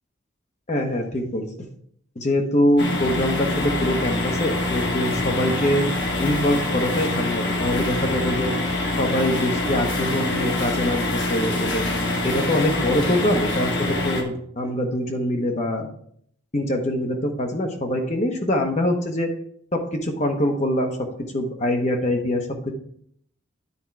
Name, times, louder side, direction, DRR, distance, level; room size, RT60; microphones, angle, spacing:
voice 1, 0.7-1.4 2.2-5.9 6.2-8.5 9.0-11.9 12.2-15.9 16.5-19.3 19.7-21.1 21.3-22.7, left 1 dB, 35° left, 3 dB, 0.9 m, -24 dB
sound 1, 2.8-14.2, left 2 dB, 55° left, 1.3 m, -25 dB
9.7 x 4.5 x 4.6 m, 0.66 s
head